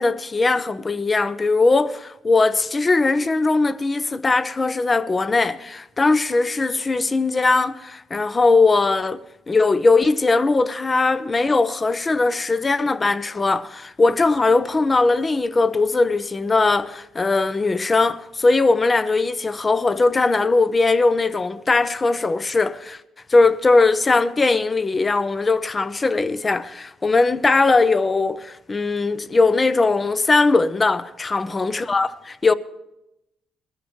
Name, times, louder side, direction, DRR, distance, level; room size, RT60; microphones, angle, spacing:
voice 1, 0.0-9.2 9.5-23.0 23.3-32.5, left 3 dB, 30° left, 0.7 m, -19 dB
21.5 x 13.5 x 3.2 m
cardioid pair, 90°, 0 cm